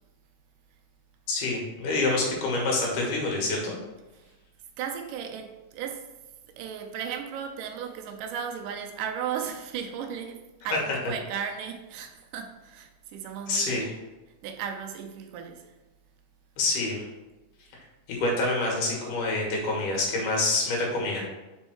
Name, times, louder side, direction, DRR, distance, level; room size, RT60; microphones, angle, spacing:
voice 1, 1.3-3.8 13.5-13.9 16.6-17.0 18.2-21.2, left 2 dB, 80° left, 3.0 m, -27 dB
voice 2, 4.8-6.1 6.6-13.9 14.4-15.7, right 7 dB, 85° right, 2.3 m, -35 dB
5.4 x 4.5 x 4.5 m
omnidirectional pair, 3.7 m